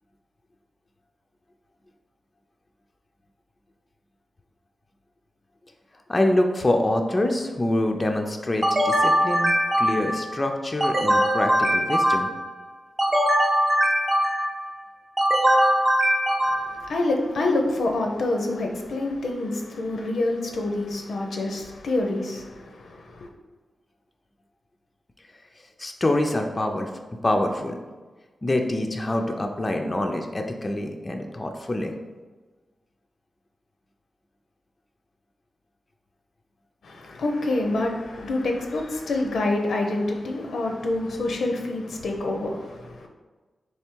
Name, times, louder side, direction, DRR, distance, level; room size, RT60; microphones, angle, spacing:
voice 1, 6.1-12.3 25.8-26.9 27.2-27.8 28.4-31.9, left 1 dB, 25° left, 3 dB, 0.4 m, -25 dB
sound 1, 8.6-10.3 10.8-12.5 13.0-14.6 15.2-16.9, equal, 25° right, 0.6 m, -21 dB
voice 2, 16.5-23.3 36.8-43.1, left 2 dB, 85° left, 2 dB, 0.6 m, -27 dB
3.4 x 3.2 x 4.5 m, 1.3 s
wide cardioid pair, 100°, 0 cm